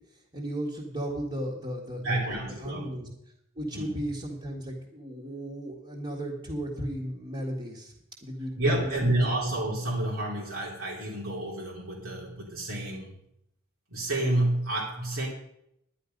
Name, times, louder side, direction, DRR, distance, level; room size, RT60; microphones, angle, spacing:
voice 1, 0.3-3.1 3.6-7.9 8.2-9.1, right 1 dB, 25° right, -3 dB, 1.9 m, -35 dB
voice 2, 2.0-2.9 3.7-4.0 8.6-13.2 13.9-15.3, right 1 dB, 85° right, -4 dB, 3.1 m, -29 dB
11.0 x 11.0 x 5.3 m, 0.78 s
head